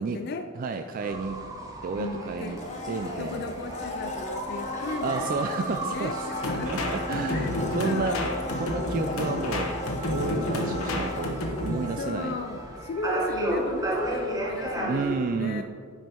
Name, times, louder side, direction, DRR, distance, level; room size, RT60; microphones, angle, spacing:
voice 1, 0.0-0.5 2.0-2.6 3.2-6.9 7.3-8.4 10.3-11.0 12.0-15.6, left 3 dB, 50° left, 7 dB, 0.4 m, -36 dB
voice 2, 0.6-1.4 1.8-2.6 2.9-3.5 5.0-6.2 6.6-8.2 8.6-9.8 10.1-12.4 14.9-15.6, right 4 dB, 40° right, 6 dB, 0.3 m, -31 dB
sound 1, 1.0-15.1, right 1 dB, 15° right, 1.2 m, -35 dB
Domestic sounds home sounds, 2.5-12.5 12.8-12.9, left 2 dB, 35° left, 0.8 m, -36 dB
sound 2, 6.4-11.9, left 1 dB, 80° left, 1.1 m, -30 dB
8.9 x 5.4 x 4.4 m, 2.1 s
head